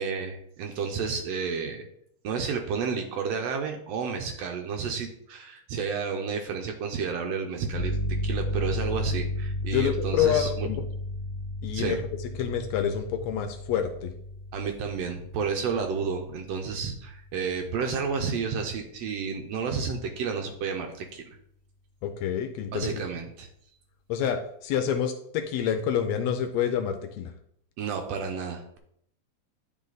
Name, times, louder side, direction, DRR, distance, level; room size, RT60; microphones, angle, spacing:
voice 1, 0.0-1.9 2.2-10.7 11.7-12.0 14.5-21.4 22.7-23.5 27.8-28.8, right 5 dB, 70° right, 4 dB, 1.8 m, -31 dB
sound 1, 7.7-18.3, left 1 dB, 50° left, 1.2 m, -34 dB
voice 2, 9.7-10.8 11.6-14.1 22.0-23.0 24.1-27.3, left 8 dB, 75° left, 7 dB, 1.7 m, -28 dB
10.5 x 4.1 x 3.9 m, 0.71 s
omnidirectional pair, 3.4 m